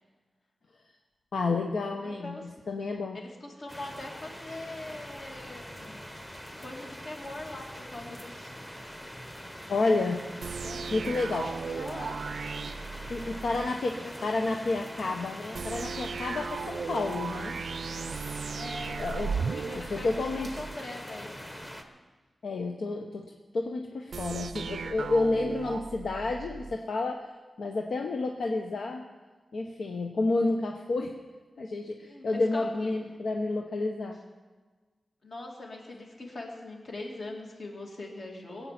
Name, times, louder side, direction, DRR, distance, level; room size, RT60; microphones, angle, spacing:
voice 1, 1.3-2.3 2.7-3.2 9.7-10.2 10.9-11.5 13.1-17.5 19.0-19.3 19.9-20.5 22.4-23.2 23.5-27.2 27.6-29.0 29.5-31.1 31.6-34.2, left 3 dB, 75° left, 2 dB, 1.0 m, -30 dB
voice 2, 1.9-2.5 3.1-6.0 6.6-8.5 10.6-12.3 14.0-14.1 18.5-21.3 32.1-32.9 35.2-38.7, left 2 dB, 55° left, 0 dB, 2.5 m, -42 dB
sound 1, 3.7-21.8, equal, 10° left, 1.1 m, -43 dB
sound 2, 10.4-13.7 15.5-20.8 24.1-26.8, right 5 dB, 75° right, 0.5 m, -36 dB
21.0 x 8.3 x 5.9 m, 1.4 s
wide cardioid pair, 175°, 0 cm